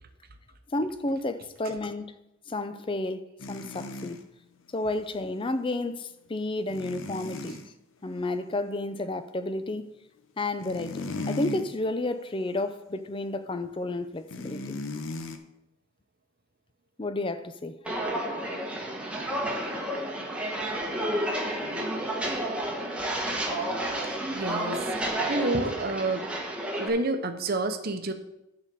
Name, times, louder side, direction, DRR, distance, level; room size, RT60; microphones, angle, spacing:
voice 1, 0.7-2.2 2.5-4.2 4.7-7.6 8.0-9.9 10.4-14.8 17.0-17.8, left 2 dB, 25° left, 0.5 m, -31 dB
sound 1, 3.4-4.2 6.7-7.7 10.4-11.7 12.2-12.4 14.3-15.4, left 3 dB, 75° left, 0.8 m, -36 dB
Walk footsteps, 17.8-26.9, right 1 dB, 5° right, 1.1 m, -31 dB
voice 2, 24.1-24.8 25.3-26.3 26.8-28.1, right 2 dB, 50° right, 0.8 m, -29 dB
10.5 x 4.0 x 6.8 m
head